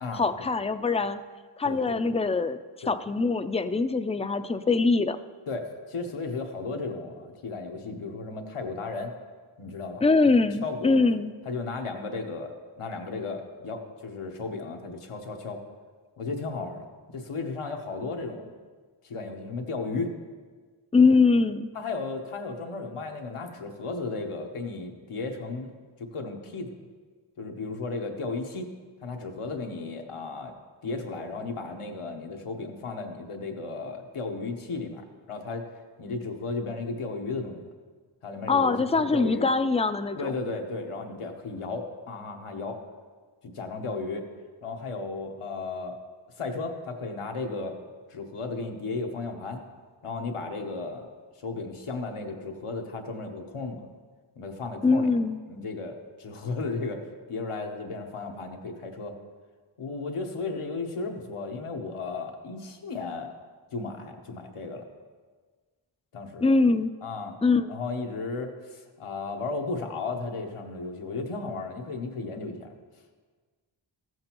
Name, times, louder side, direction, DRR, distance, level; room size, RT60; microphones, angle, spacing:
voice 1, 0.1-1.2 1.6-2.6 2.9-5.2 10.0-11.3 20.9-21.7 38.5-40.4 54.8-55.4 66.4-66.9 67.4-67.7, left 4 dB, 15° left, 11 dB, 0.4 m, -23 dB
voice 2, 1.6-2.0 2.8-2.9 5.5-9.1 9.6-11.0 11.4-15.6 16.2-18.5 19.0-20.1 21.7-25.7 26.0-26.7 27.4-28.7 29.0-30.5 30.8-35.6 36.0-37.7 38.2-39.5 40.2-42.8 43.5-44.3 44.6-46.0 46.4-47.8 48.1-49.6 50.0-51.1 51.4-53.8 54.4-55.1 55.5-57.0 57.3-59.2 59.8-63.3 63.7-64.8 66.1-66.5 67.0-67.4 67.7-72.7, left 3 dB, 85° left, 3 dB, 1.1 m, -34 dB
14.5 x 7.7 x 3.0 m, 1.5 s
cardioid pair, 40°, 50 cm